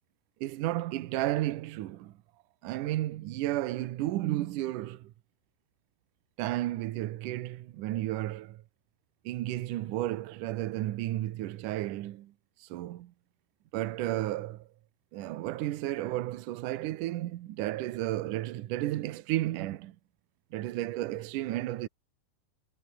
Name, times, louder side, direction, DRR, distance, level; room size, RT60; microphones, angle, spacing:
voice 1, 0.4-2.2 2.6-5.1 6.4-8.6 9.2-12.3 12.6-13.1 13.7-14.7 15.1-19.9 20.5-21.9, right 15 dB, 85° right, 1.8 m, -33 dB
omnidirectional pair, 5.2 m